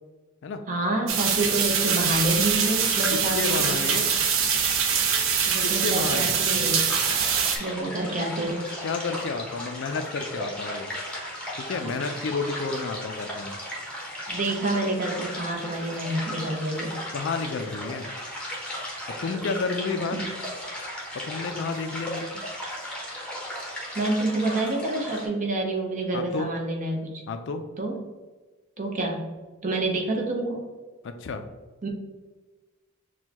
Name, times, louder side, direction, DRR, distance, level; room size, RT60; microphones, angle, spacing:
voice 1, 0.7-3.7 5.5-6.8 7.6-8.7 11.8-11.9 14.3-17.0 20.1-20.2 23.9-27.2 27.8-28.0 28.8-29.3 29.6-30.7 31.8-31.9, right 2 dB, 35° right, 1 dB, 0.8 m, -28 dB
sound 1, 1.1-7.6, right 6 dB, 65° right, 0.5 m, -24 dB
voice 2, 3.1-4.2 5.6-6.4 7.9-8.0 8.8-10.9 11.6-13.6 17.1-18.1 19.2-20.2 21.2-22.4 26.1-26.5 27.3-27.7 31.0-31.4, left 4 dB, 60° left, 8 dB, 0.4 m, -31 dB
sound 2, 6.9-25.3, equal, 5° left, 0.9 m, -36 dB
6.2 x 2.3 x 2.9 m, 1.3 s
head